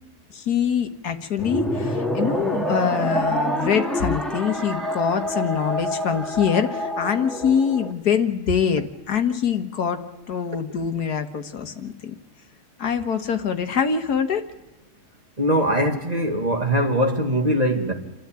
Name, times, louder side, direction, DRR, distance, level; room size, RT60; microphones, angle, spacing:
voice 1, 0.3-12.1 12.8-14.4, left 7 dB, 75° left, 1.8 m, -24 dB
sound 1, 1.4-7.9, equal, ahead, 2.0 m, -27 dB
voice 2, 15.4-17.9, equal, 25° right, 2.3 m, -21 dB
28.0 x 13.0 x 8.9 m
omnidirectional pair, 1.7 m